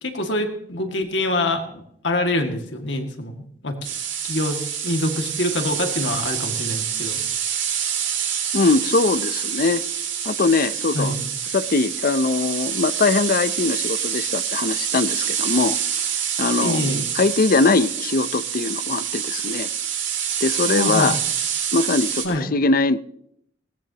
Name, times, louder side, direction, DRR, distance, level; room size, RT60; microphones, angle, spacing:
voice 1, 0.0-3.8 4.3-7.2 10.9-11.3 16.6-17.1 20.7-21.2 22.2-22.5, left 1 dB, 70° left, 4 dB, 2.1 m, -25 dB
sound 1, 3.8-22.2, right 8 dB, 75° right, 3.2 m, -26 dB
voice 2, 8.5-9.8 10.2-11.1 11.5-15.8 16.4-19.7 20.4-21.2 21.7-23.0, left 3 dB, 50° left, 14 dB, 0.6 m, -21 dB
19.0 x 18.0 x 2.9 m, 0.69 s
head